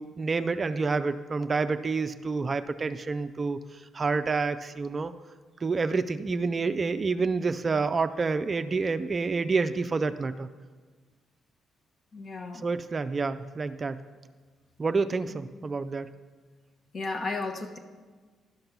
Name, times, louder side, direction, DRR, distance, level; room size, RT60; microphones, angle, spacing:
voice 1, 0.0-3.6 3.9-5.1 5.6-10.5 12.6-14.0 14.8-16.1, right 4 dB, 35° right, 10 dB, 0.4 m, -28 dB
voice 2, 12.1-12.7 16.9-17.8, left 3 dB, 45° left, 5 dB, 1.1 m, -34 dB
12.0 x 5.3 x 5.9 m, 1.4 s
cardioid pair, 90°, 0 cm